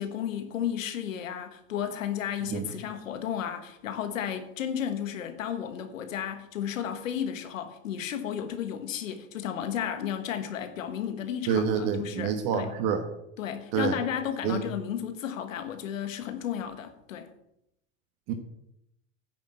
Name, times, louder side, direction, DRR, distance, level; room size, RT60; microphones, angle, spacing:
voice 1, 0.0-12.7 13.4-17.3, left 9 dB, 90° left, 1.6 m, -33 dB
voice 2, 11.5-13.0 13.7-14.0 14.4-14.6 18.3-18.4, right 7 dB, 55° right, 1.6 m, -27 dB
10.5 x 6.2 x 8.2 m
hypercardioid pair, 100°, 38 cm